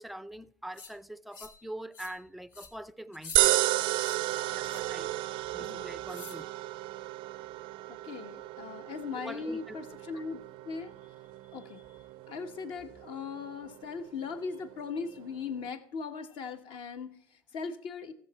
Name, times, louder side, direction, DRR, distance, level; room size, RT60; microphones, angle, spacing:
voice 1, 0.0-3.6 4.5-5.2 5.5-6.5 9.1-9.8, right 1 dB, ahead, 0.4 m, -44 dB
sound 1, 0.7-0.9 1.3-1.6 1.9-2.2 2.5-2.7 3.1-3.4 3.9-4.2 4.6-4.9 6.1-6.4, left 5 dB, 75° left, 1.6 m, -48 dB
sound 2, 3.4-15.7, right 17 dB, 60° right, 0.4 m, -34 dB
voice 2, 7.9-10.9 11.5-11.8 12.3-18.1, left 5 dB, 60° left, 1.2 m, -39 dB
14.5 x 7.1 x 4.2 m
hypercardioid pair, 85°, 10 cm